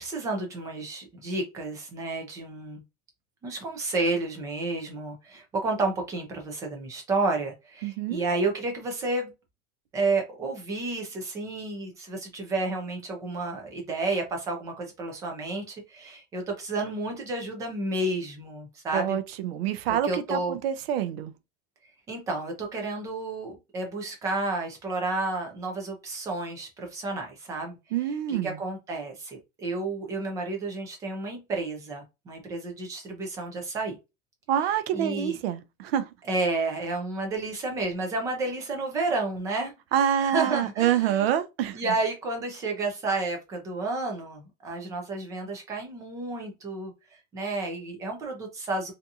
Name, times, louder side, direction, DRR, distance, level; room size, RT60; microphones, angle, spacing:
voice 1, 0.0-2.8 3.4-9.3 9.9-19.2 19.9-20.6 22.1-27.8 28.0-34.0 34.9-35.4 36.3-39.7 40.2-41.3 41.7-46.9 47.3-48.9, right 3 dB, 10° right, 0.3 m, -31 dB
voice 2, 7.8-8.2 18.9-21.3 27.9-28.6 34.5-36.1 39.9-41.8, right 10 dB, 90° right, 0.5 m, -26 dB
2.7 x 2.6 x 2.3 m
supercardioid pair, 170°, 29 cm